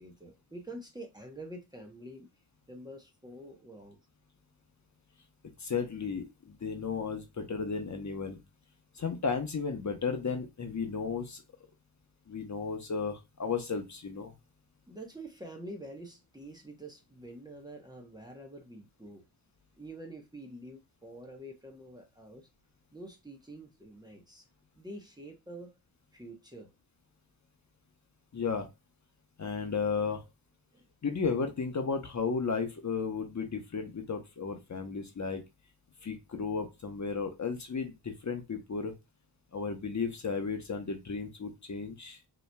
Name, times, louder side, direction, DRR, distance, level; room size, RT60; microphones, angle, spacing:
voice 1, 0.0-2.3 2.7-4.0 14.9-19.2 19.8-22.5 22.9-24.5 24.8-25.8 26.1-26.7 30.7-30.9, right 1 dB, 10° right, 0.9 m, -47 dB
voice 2, 5.6-8.4 8.9-11.4 12.3-14.3 28.3-28.7 29.4-30.2 31.0-35.4 36.0-38.9 39.5-42.2, left 5 dB, 40° left, 0.9 m, -34 dB
5.4 x 3.1 x 2.2 m
wide cardioid pair, 100°, 45 cm